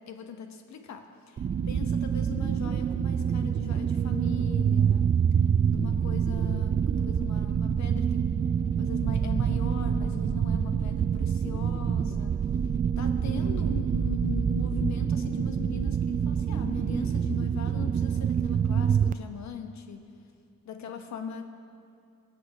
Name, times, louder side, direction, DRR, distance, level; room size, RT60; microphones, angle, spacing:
voice 1, 0.1-1.4 1.7-5.1 5.7-8.3 8.8-12.4 13.0-20.1 20.6-21.4, left 7 dB, 65° left, 6 dB, 1.3 m, -40 dB
sound 1, 1.4-19.1, right 7 dB, 30° right, 0.3 m, -26 dB
20.5 x 8.1 x 4.9 m, 2.5 s
cardioid pair, 90°, 30 cm